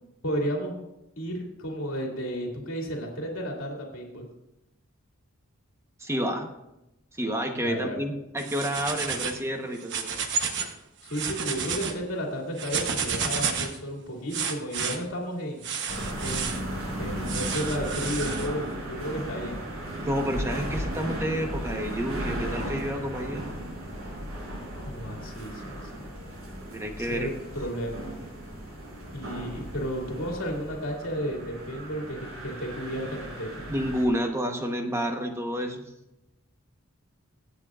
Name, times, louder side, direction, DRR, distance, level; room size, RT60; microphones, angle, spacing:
voice 1, 0.2-0.8 1.2-4.3 7.6-8.0 11.0-15.6 16.2-19.6 24.8-26.1 27.0-28.1 29.1-33.7, equal, 80° left, -1 dB, 2.5 m, -33 dB
voice 2, 6.0-6.5 7.2-10.1 20.0-23.4 26.6-27.3 33.7-35.8, equal, 15° right, 4 dB, 1.0 m, -29 dB
sound 1, 8.4-9.4 9.8-10.7 11.1-11.9 12.6-13.8 14.3-15.0 15.6-16.6 17.3-18.5, right 6 dB, 60° right, 1.0 m, -31 dB
sound 2, 15.9-34.1, right 1 dB, 85° right, 4.8 m, -36 dB
24.0 x 8.4 x 2.5 m, 0.91 s
head